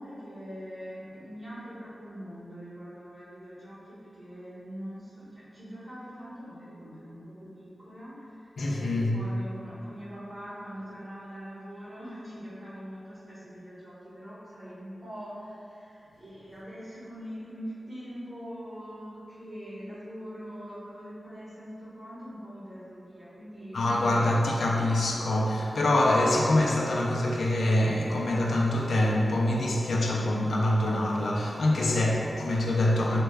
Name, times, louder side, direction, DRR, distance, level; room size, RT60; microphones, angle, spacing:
voice 1, 0.0-23.9 24.3-25.0, equal, 30° right, -11 dB, 1.5 m, -43 dB
voice 2, 8.6-9.1 23.7-33.2, left 1 dB, 85° left, -2 dB, 0.4 m, -25 dB
4.2 x 2.2 x 3.3 m, 2.7 s
wide cardioid pair, 105°, 0 cm